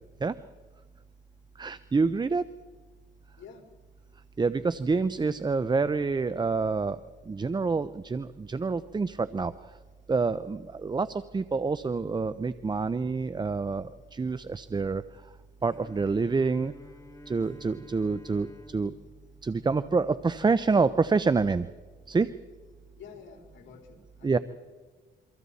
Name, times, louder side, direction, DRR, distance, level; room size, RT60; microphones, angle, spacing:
voice 1, 1.6-2.4 4.4-9.8 10.1-15.3 15.6-16.7 17.3-18.9 19.4-21.7 22.1-22.3 24.2-24.4, right 4 dB, 20° right, 14 dB, 0.6 m, -27 dB
voice 2, 3.4-3.7 23.0-24.4, left 6 dB, 70° left, 1 dB, 4.2 m, -49 dB
Bowed string instrument, 15.6-20.6, left 1 dB, 15° left, 1.7 m, -52 dB
28.0 x 25.0 x 4.2 m, 1.4 s
cardioid pair, 90°, 20 cm